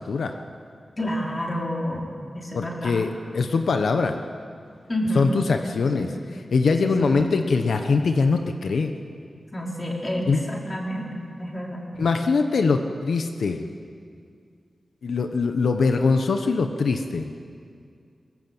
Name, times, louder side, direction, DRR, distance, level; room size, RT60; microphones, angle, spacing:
voice 1, 1.0-3.0 4.9-5.3 5.8-6.1 6.8-7.3 9.5-11.8, equal, 25° left, -1 dB, 4.2 m, -29 dB
voice 2, 2.5-4.2 5.1-8.9 10.3-10.4 12.0-13.7 15.0-17.3, left 4 dB, 90° left, 6 dB, 1.2 m, -22 dB
22.5 x 21.5 x 8.0 m, 2.3 s
wide cardioid pair, 140°, 0 cm